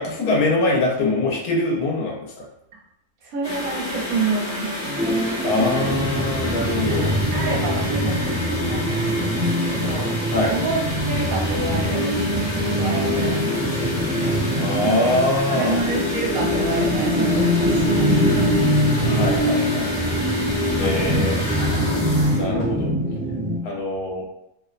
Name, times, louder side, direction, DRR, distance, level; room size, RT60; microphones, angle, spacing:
voice 1, 0.0-2.3 5.4-7.2 10.3-10.5 14.6-15.8 19.0-19.9 20.5-21.4 22.3-22.9 23.6-24.2, left 2 dB, 80° left, -2 dB, 1.2 m, -23 dB
voice 2, 3.2-5.2 5.7-5.9 6.9-7.0 7.3-10.2 10.5-10.8 11.1-19.3 20.7-22.4, right 3 dB, 70° right, -3 dB, 1.1 m, -30 dB
sound 1, 3.4-22.8, left 1 dB, 50° left, 0.9 m, -30 dB
sound 2, 5.0-23.6, equal, 10° right, 0.5 m, -23 dB
2.9 x 2.0 x 2.4 m, 0.82 s
omnidirectional pair, 1.5 m